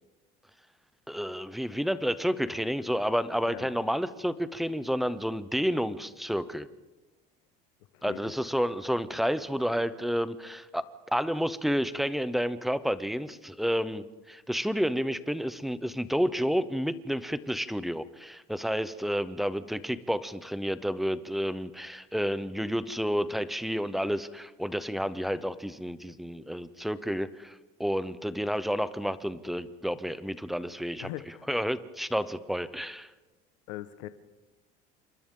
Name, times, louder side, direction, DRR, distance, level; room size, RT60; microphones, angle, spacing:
voice 1, 1.1-6.7 8.0-10.8 11.1-31.1 31.5-33.1, equal, ahead, 14 dB, 0.6 m, -30 dB
voice 2, 7.9-8.3 31.0-31.5 33.7-34.1, left 15 dB, 80° left, 11 dB, 1.2 m, -41 dB
29.0 x 26.5 x 3.7 m, 1.1 s
cardioid pair, 160°, 20 cm